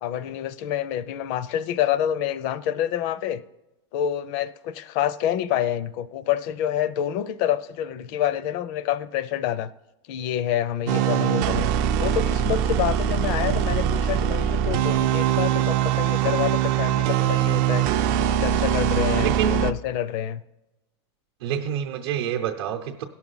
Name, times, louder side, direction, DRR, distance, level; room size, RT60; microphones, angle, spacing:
voice 1, 0.0-3.4 3.9-9.7 10.1-11.7 12.0-17.9 18.2-20.4, left 10 dB, 40° left, 15 dB, 0.4 m, -27 dB
sound 1, 10.9-19.7, right 10 dB, 40° right, 0.4 m, -22 dB
voice 2, 19.2-19.6 21.4-23.0, right 9 dB, 60° right, 1 dB, 0.7 m, -27 dB
17.5 x 6.0 x 3.9 m, 0.98 s
supercardioid pair, 165°, 14 cm